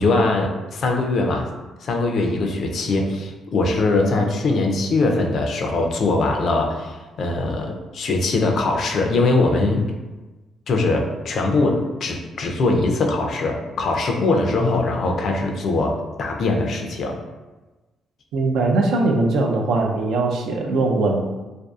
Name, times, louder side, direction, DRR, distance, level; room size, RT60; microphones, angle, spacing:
voice 1, 0.0-1.5 1.8-9.8 10.7-17.1, left 2 dB, 60° left, 2 dB, 0.4 m, -21 dB
voice 2, 18.3-21.2, right 3 dB, 80° right, 1 dB, 0.4 m, -20 dB
2.5 x 2.3 x 2.3 m, 1.2 s
cardioid pair, 90°, 0 cm